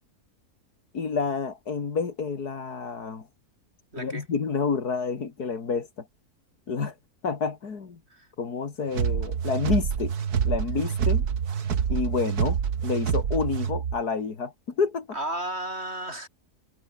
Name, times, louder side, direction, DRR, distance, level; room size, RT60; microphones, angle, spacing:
voice 1, 0.9-3.3 4.0-6.1 6.7-6.9 7.2-8.0 8.4-10.1 10.4-11.3 11.9-15.1, left 5 dB, 75° left, 2.8 m, -29 dB
voice 2, 3.9-4.3 8.1-8.3 15.1-16.3, right 1 dB, 40° right, 7.5 m, -33 dB
sound 1, 8.9-14.0, right 7 dB, 70° right, 2.0 m, -26 dB
omnidirectional pair, 1.7 m